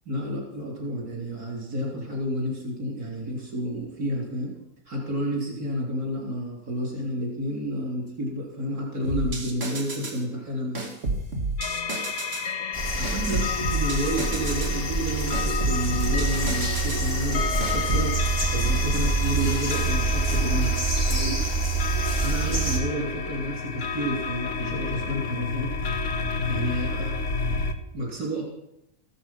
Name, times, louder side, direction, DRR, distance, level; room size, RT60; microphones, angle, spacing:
voice 1, 0.1-4.5 4.9-10.9 13.0-18.2 18.5-20.7 21.0-21.4 22.2-25.8 26.5-27.1 27.9-28.4, equal, 75° right, -1 dB, 4.1 m, -30 dB
sound 1, 9.0-10.2 10.7-12.5 13.0-14.8 15.3-17.1 17.6-18.1, right 2 dB, 50° right, 2.4 m, -31 dB
sound 2, 11.6-27.7, left 5 dB, 55° left, 1.4 m, -31 dB
sound 3, 12.7-22.8, right 3 dB, 20° left, 2.2 m, -26 dB
15.0 x 12.5 x 5.8 m, 0.82 s
omnidirectional pair, 1.6 m